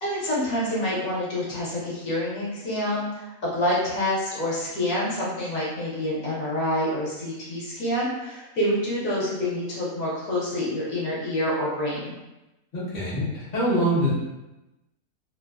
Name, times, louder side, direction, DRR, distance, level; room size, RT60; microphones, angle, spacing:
voice 1, 0.0-12.1, left 1 dB, 65° left, -6 dB, 1.1 m, -27 dB
voice 2, 12.7-14.2, equal, 40° left, -9 dB, 0.7 m, -24 dB
2.9 x 2.1 x 2.3 m, 1.0 s
omnidirectional pair, 1.6 m